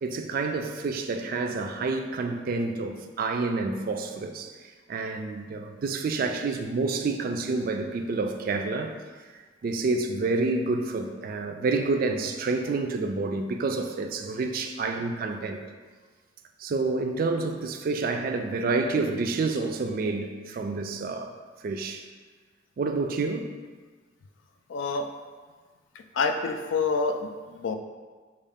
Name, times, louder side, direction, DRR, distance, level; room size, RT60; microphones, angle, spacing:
voice 1, 0.0-4.5 4.9-8.9 9.6-15.6 16.6-21.3 21.6-22.0 22.8-23.5, right 3 dB, 50° right, 5 dB, 0.3 m, -28 dB
voice 2, 24.7-25.1 25.9-27.8, left 4 dB, 85° left, 6 dB, 0.4 m, -28 dB
6.3 x 2.3 x 3.5 m, 1.4 s
head